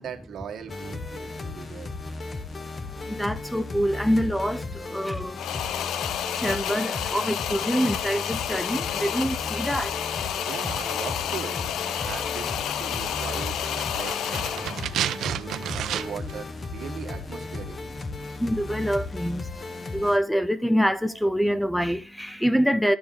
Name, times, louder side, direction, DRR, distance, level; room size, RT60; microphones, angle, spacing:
voice 1, 0.0-1.9 10.4-11.6 11.8-14.8 15.3-17.8, right 7 dB, 60° right, 1.5 m, -39 dB
sound 1, 0.7-20.2, left 3 dB, 30° left, 1.1 m, -36 dB
voice 2, 3.0-5.4 5.6-5.8 6.1-10.5 18.2-23.0, equal, ahead, 0.4 m, -26 dB
sound 2, 5.4-14.9, left 10 dB, 85° left, 0.6 m, -30 dB
sound 3, 13.5-16.4 16.6-16.7, right 10 dB, 75° right, 0.5 m, -31 dB
11.5 x 6.9 x 3.9 m
cardioid pair, 145°, 0 cm